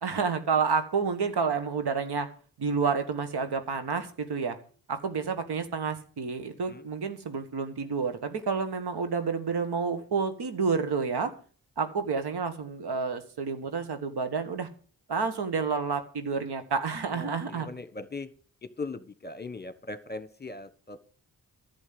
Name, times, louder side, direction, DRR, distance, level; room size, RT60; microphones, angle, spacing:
voice 1, 0.0-2.3 2.6-4.6 4.9-11.3 11.8-14.7 15.1-17.7, right 5 dB, 70° right, 9 dB, 1.7 m, -29 dB
voice 2, 17.1-18.3 18.8-21.0, left 3 dB, 25° left, 13 dB, 1.3 m, -39 dB
11.0 x 7.5 x 7.8 m, 0.41 s
cardioid pair, 50°, 40 cm